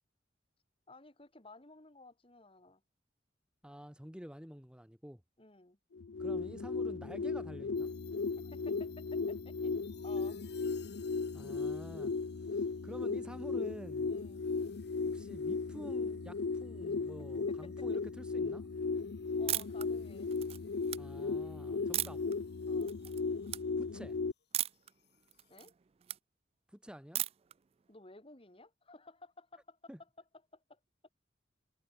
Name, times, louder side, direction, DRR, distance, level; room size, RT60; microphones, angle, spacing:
voice 1, 0.9-2.8 5.4-5.8 8.4-9.8 10.0-10.4 14.0-14.4 17.0-17.1 17.5-17.7 19.3-20.3 22.7-23.0 25.5-25.7 27.9-30.1 30.5-30.8, left 2 dB, 30° left, 2.5 m, -55 dB
voice 2, 3.6-5.2 6.2-7.9 11.3-12.2 12.5-14.1 15.1-18.7 21.0-22.3 23.8-24.2 26.7-27.2 29.9-30.0, equal, 5° right, 1.8 m, -49 dB
sound 1, 5.9-24.3, left 4 dB, 75° left, 0.6 m, -36 dB
sound 2, 7.7-25.6, left 13 dB, 60° left, 5.0 m, -65 dB
sound 3, 19.5-19.8 20.3-21.0 21.9-22.3 22.8-23.2 23.5-23.6 24.5-24.9 25.3-26.2 27.1-27.5, right 13 dB, 35° right, 0.4 m, -35 dB
head